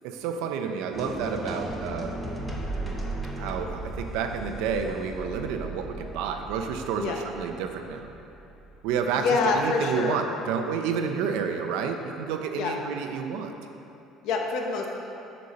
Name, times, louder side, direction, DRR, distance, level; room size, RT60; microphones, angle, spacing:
voice 1, 0.0-2.2 3.4-8.1 8.8-9.3 9.5-13.5, right 6 dB, 85° right, 5 dB, 0.6 m, -30 dB
sound 1, 0.9-9.0, right 1 dB, 5° left, 0.7 m, -36 dB
voice 2, 9.1-10.2 12.6-12.7 14.2-14.9, left 4 dB, 55° left, 1 dB, 0.9 m, -26 dB
6.7 x 5.4 x 6.5 m, 2.8 s
cardioid pair, 180°, 0 cm